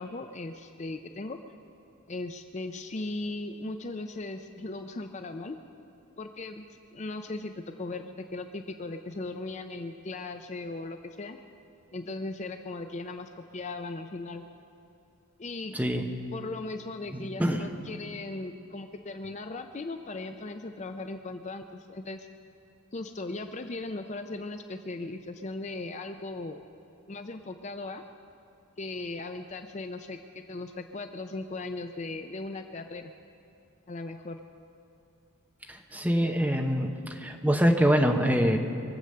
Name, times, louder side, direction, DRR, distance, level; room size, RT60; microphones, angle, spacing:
voice 1, 0.0-1.4 2.1-5.6 6.2-6.6 6.9-11.4 11.9-14.4 15.4-15.8 16.3-22.3 22.9-26.6 27.1-28.0 28.8-33.1 33.9-34.4, left 2 dB, 30° left, 7 dB, 0.4 m, -38 dB
voice 2, 15.7-16.1 17.1-17.6 35.7-38.6, equal, 5° right, 3 dB, 0.9 m, -25 dB
23.0 x 8.0 x 6.7 m, 2.7 s
head